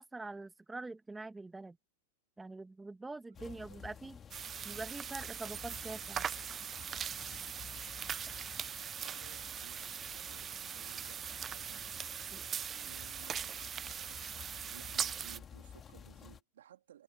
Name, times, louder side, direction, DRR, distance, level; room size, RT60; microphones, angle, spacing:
voice 1, 0.0-1.8 2.4-4.2 4.6-6.2 12.3-12.4, right 3 dB, 10° right, 1.5 m, -44 dB
sound 1, 3.3-16.4, left 7 dB, 25° left, 2.3 m, -53 dB
voice 2, 3.4-3.8 8.7-12.1 12.7-17.0, right 11 dB, 80° right, 3.1 m, -59 dB
sound 2, 4.3-15.4, right 8 dB, 25° right, 0.6 m, -41 dB
hypercardioid pair, 120°, 0 cm